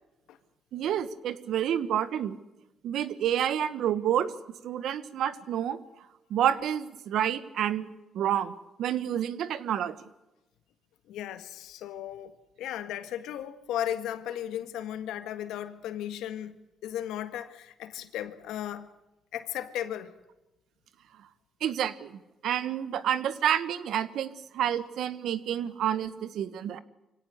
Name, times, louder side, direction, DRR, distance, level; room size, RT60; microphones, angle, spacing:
voice 1, 0.7-2.4 2.8-4.3 4.6-5.8 6.3-7.9 8.1-10.1 21.6-26.8, right 10 dB, 75° right, 1.3 m, -29 dB
voice 2, 11.1-12.3 12.6-18.9 19.3-20.1, left 11 dB, 90° left, 1.7 m, -35 dB
24.0 x 17.5 x 8.2 m
cardioid pair, 90°, 0 cm